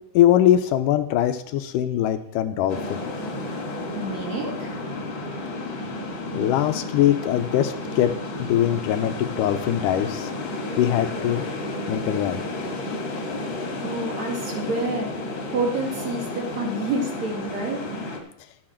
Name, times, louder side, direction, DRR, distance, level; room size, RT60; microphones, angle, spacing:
voice 1, 0.2-3.0 6.3-8.1 8.4-10.3 10.8-11.4 11.9-12.4, left 11 dB, 80° left, 9 dB, 2.1 m, -22 dB
sound 1, 2.7-18.2, left 2 dB, 45° left, 1.9 m, -32 dB
voice 2, 4.0-4.8 13.8-15.1 15.5-17.9, right 2 dB, 55° right, -1 dB, 3.1 m, -28 dB
12.5 x 8.7 x 4.4 m, 0.72 s
omnidirectional pair, 4.0 m